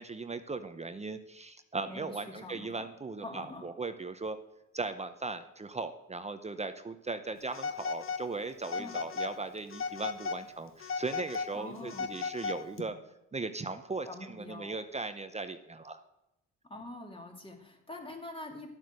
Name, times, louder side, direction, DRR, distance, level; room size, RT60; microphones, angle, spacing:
voice 1, 0.0-4.4 4.7-13.0 13.3-16.0, right 3 dB, 20° right, 9 dB, 0.7 m, -38 dB
voice 2, 1.9-2.9 3.2-3.7 8.8-9.0 11.5-12.1 14.1-14.8 16.7-18.7, left 1 dB, 15° left, 2 dB, 2.5 m, -45 dB
Telephone, 7.5-8.3 8.6-9.3 9.7-10.4 10.8-12.8, left 5 dB, 45° left, 1.2 m, -36 dB
11.5 x 7.9 x 6.4 m, 0.89 s
cardioid pair, 90°, 30 cm